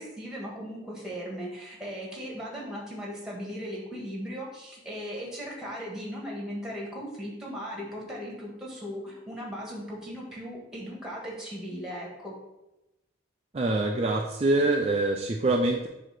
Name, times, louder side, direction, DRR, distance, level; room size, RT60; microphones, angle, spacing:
voice 1, 0.0-12.3, equal, 5° right, -3 dB, 1.7 m, -37 dB
voice 2, 13.5-15.9, right 2 dB, 30° right, 1 dB, 0.4 m, -25 dB
7.7 x 2.9 x 6.0 m, 0.96 s
head